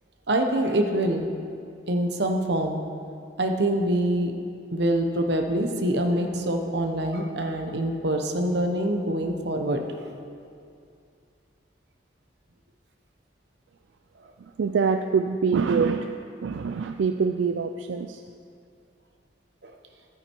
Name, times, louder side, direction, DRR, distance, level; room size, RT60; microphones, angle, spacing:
voice 1, 0.3-1.3 1.9-2.8 3.4-4.3 4.7-9.8 19.6-19.7, right 1 dB, 65° right, 4 dB, 1.0 m, -25 dB
voice 2, 14.6-16.1 16.4-18.2, right 5 dB, 85° right, 7 dB, 0.4 m, -24 dB
12.0 x 9.0 x 4.6 m, 2.3 s
head